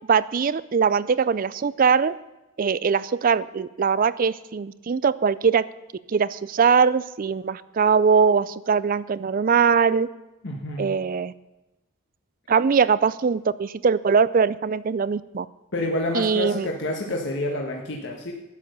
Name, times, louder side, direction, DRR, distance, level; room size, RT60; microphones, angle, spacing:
voice 1, 0.1-2.1 2.6-5.6 6.1-10.1 10.8-11.3 12.5-15.5 16.1-16.7, right 6 dB, 40° right, 17 dB, 0.4 m, -21 dB
voice 2, 10.4-10.9 15.7-18.3, left 1 dB, 55° left, 0 dB, 1.6 m, -28 dB
12.5 x 10.5 x 6.8 m, 1.0 s
head